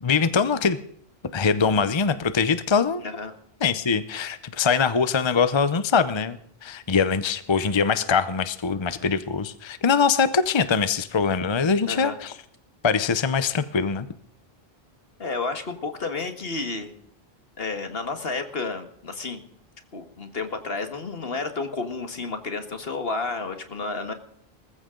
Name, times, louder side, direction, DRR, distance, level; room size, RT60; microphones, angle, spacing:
voice 1, 0.0-0.8 1.3-3.0 3.6-12.3 12.8-14.1, left 5 dB, 30° left, 13 dB, 0.7 m, -23 dB
voice 2, 11.8-12.2 15.2-17.0 17.6-19.4 19.9-24.1, left 3 dB, 70° left, 7 dB, 1.9 m, -31 dB
20.0 x 14.5 x 3.8 m, 0.65 s
omnidirectional pair, 1.0 m